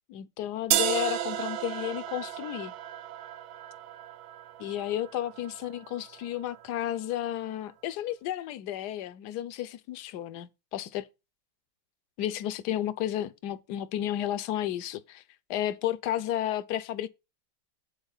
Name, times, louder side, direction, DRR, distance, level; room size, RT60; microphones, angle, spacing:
voice 1, 0.1-2.8 4.6-11.1 12.2-15.2 15.5-17.1, left 12 dB, 65° left, 1.1 m, -32 dB
sound 1, 0.7-6.7, right 11 dB, 80° right, 1.4 m, -33 dB
8.1 x 4.3 x 7.1 m
omnidirectional pair, 2.2 m